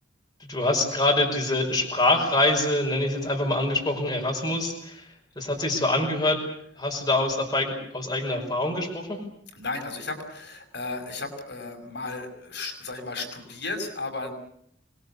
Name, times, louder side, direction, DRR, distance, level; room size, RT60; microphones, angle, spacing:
voice 1, 0.4-5.1 5.4-6.4 6.8-9.2, left 2 dB, 20° left, 1 dB, 5.5 m, -25 dB
voice 2, 9.5-14.3, left 3 dB, 65° left, 4 dB, 5.6 m, -34 dB
26.0 x 21.0 x 8.3 m, 0.68 s
head